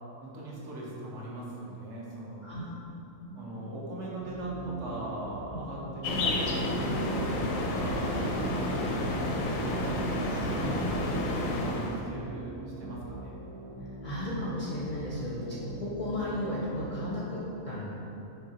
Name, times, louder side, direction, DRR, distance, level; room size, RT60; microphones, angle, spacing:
voice 1, 0.2-2.5 3.3-11.1 11.6-13.4 16.6-17.1, right 1 dB, 65° right, -5 dB, 1.1 m, -40 dB
sound 1, 3.2-16.8, right 2 dB, 80° right, 1.6 m, -43 dB
sound 2, 6.0-12.0, left 1 dB, 75° left, 1.0 m, -30 dB
voice 2, 14.0-17.9, left 1 dB, 55° left, -7 dB, 0.6 m, -34 dB
5.6 x 3.2 x 2.8 m, 2.9 s
omnidirectional pair, 1.4 m